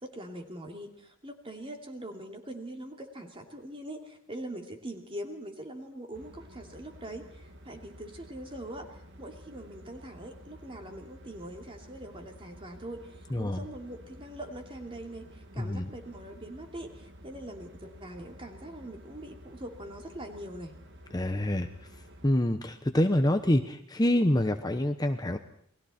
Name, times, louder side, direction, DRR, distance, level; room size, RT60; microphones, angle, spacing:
voice 1, 0.0-20.8, right 1 dB, 25° right, 4 dB, 2.8 m, -42 dB
sound 1, 6.1-22.3, equal, 55° right, 2.1 m, -51 dB
voice 2, 13.3-13.6 15.6-15.9 21.1-21.7 22.2-25.4, left 1 dB, 20° left, 7 dB, 0.9 m, -26 dB
29.0 x 21.0 x 4.4 m, 0.67 s
head